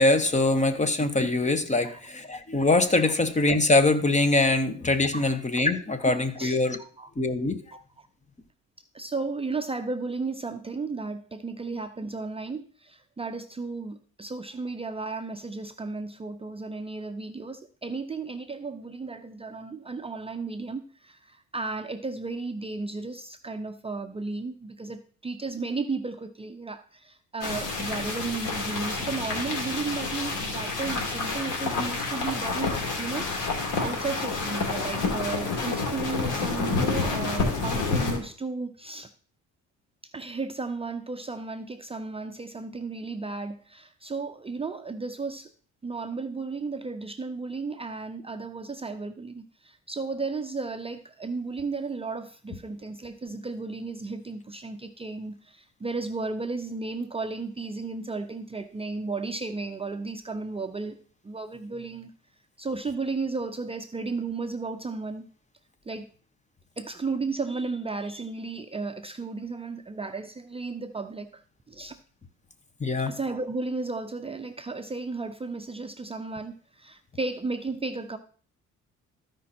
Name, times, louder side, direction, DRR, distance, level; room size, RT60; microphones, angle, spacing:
voice 1, 0.0-6.8 7.2-7.6 72.8-73.1, left 2 dB, 25° left, 1.1 m, -23 dB
voice 2, 6.4-7.1 7.7-8.1 8.9-39.1 40.0-45.5 45.8-61.0 61.2-62.1 62.6-65.3 65.9-66.1 66.8-71.4 71.7-72.0 73.1-78.2, right 3 dB, 20° right, 0.6 m, -34 dB
sound 1, 27.4-38.2, left 4 dB, 85° left, 2.6 m, -29 dB
14.0 x 5.2 x 4.3 m
cardioid pair, 90°, 30 cm